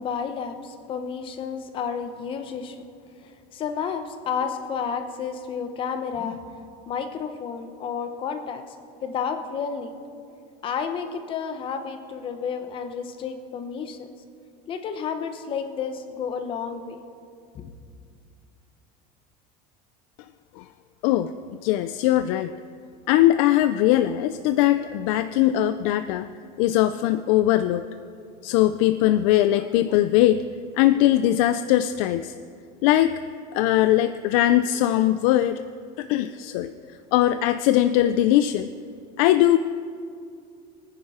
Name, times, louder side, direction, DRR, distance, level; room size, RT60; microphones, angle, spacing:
voice 1, 0.0-2.8 3.2-6.4 6.9-8.6 9.0-9.9 10.6-14.1 14.7-17.0 17.5-17.7, left 6 dB, 30° left, 8 dB, 0.9 m, -31 dB
voice 2, 21.6-22.5 23.1-26.3 26.6-27.8 28.4-30.4 30.8-32.3 32.8-33.1 33.5-35.6 36.0-36.7 37.1-38.7 39.2-39.6, left 13 dB, 80° left, 11 dB, 0.5 m, -20 dB
22.5 x 9.8 x 4.9 m, 2.4 s
cardioid pair, 180°, 17 cm